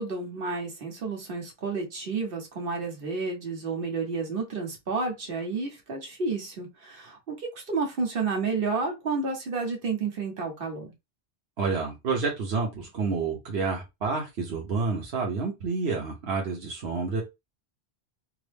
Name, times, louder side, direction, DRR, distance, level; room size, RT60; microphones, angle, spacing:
voice 1, 0.0-10.9, right 4 dB, 65° right, 1.3 m, -31 dB
voice 2, 11.6-17.2, right 4 dB, 85° right, 1.1 m, -29 dB
3.5 x 2.1 x 3.3 m
omnidirectional pair, 1.0 m